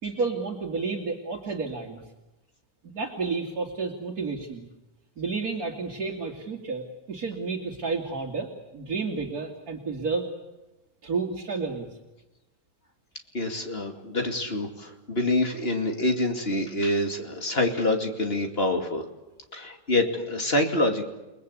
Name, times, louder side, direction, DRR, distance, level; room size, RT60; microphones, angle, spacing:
voice 1, 0.0-2.0 2.8-4.7 5.2-8.5 8.7-10.3 11.0-11.9, right 4 dB, 60° right, 0 dB, 2.8 m, -31 dB
voice 2, 13.3-19.0 19.5-21.0, left 1 dB, 35° left, 4 dB, 2.7 m, -26 dB
29.5 x 20.0 x 8.3 m, 1.0 s
omnidirectional pair, 1.8 m